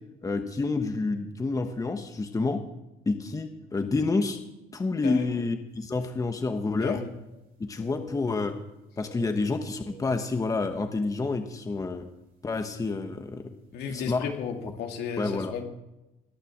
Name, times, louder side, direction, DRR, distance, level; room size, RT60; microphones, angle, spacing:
voice 1, 0.2-2.6 3.1-4.4 4.7-7.0 7.7-8.6 9.0-12.0 12.4-13.4 13.9-14.2 15.2-15.5, left 3 dB, 20° left, 6 dB, 1.2 m, -28 dB
voice 2, 5.0-5.4 6.8-7.1 13.7-15.6, left 6 dB, 75° left, 3 dB, 2.4 m, -34 dB
sound 1, 5.8-5.9 6.2-7.5 7.7-8.6 8.9-11.1 11.5-11.6 12.3-12.5 13.6-13.7 14.0-14.1, right 2 dB, 60° right, 5.0 m, -51 dB
20.0 x 6.8 x 7.2 m, 0.95 s
cardioid pair, 110°, 17 cm